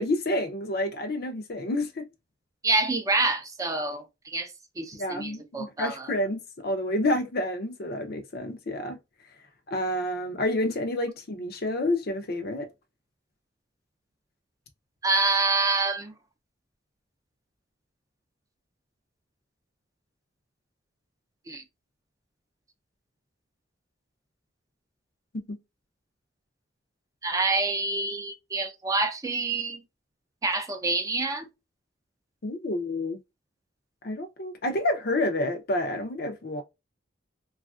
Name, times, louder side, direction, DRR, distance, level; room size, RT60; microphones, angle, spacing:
voice 1, 0.0-2.1 5.0-9.0 9.7-12.7 25.5-25.6 32.4-33.2 34.0-36.6, left 1 dB, 55° left, 0.6 m, -29 dB
voice 2, 2.6-4.5 4.8-6.1 15.0-16.1 21.5-21.6 27.2-29.8 30.4-31.5, right 3 dB, 15° right, 0.4 m, -27 dB
3.2 x 2.4 x 2.4 m
head